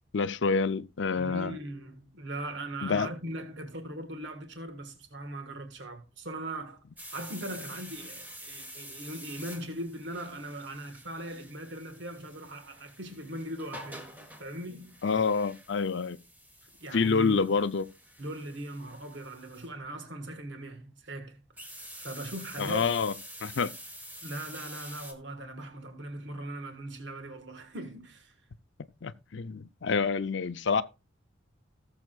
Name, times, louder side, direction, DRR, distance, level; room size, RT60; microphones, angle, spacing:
voice 1, 0.1-1.6 2.8-3.1 15.0-16.2 16.9-17.9 22.6-23.1 23.4-23.7 29.0-30.8, left 5 dB, 65° left, 0.5 m, -27 dB
voice 2, 1.1-6.8 7.1-15.0 16.8-17.3 18.2-22.8 24.2-28.3, right 1 dB, 65° right, 1.6 m, -40 dB
sound 1, 7.0-19.7 21.6-25.1, equal, 10° right, 1.4 m, -48 dB
18.0 x 7.3 x 2.4 m
head